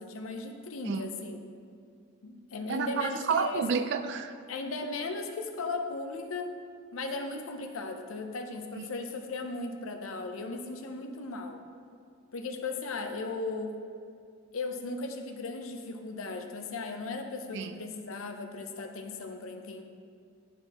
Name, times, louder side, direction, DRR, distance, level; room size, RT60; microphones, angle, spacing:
voice 1, 0.0-1.4 2.2-3.6 4.5-6.6 6.9-11.6 12.3-13.8 14.5-19.8, left 3 dB, 80° left, 5 dB, 0.6 m, -37 dB
voice 2, 2.7-4.3 8.8-8.9 17.5-17.7, right 6 dB, 60° right, 10 dB, 0.4 m, -30 dB
11.0 x 3.9 x 2.9 m, 2.3 s
head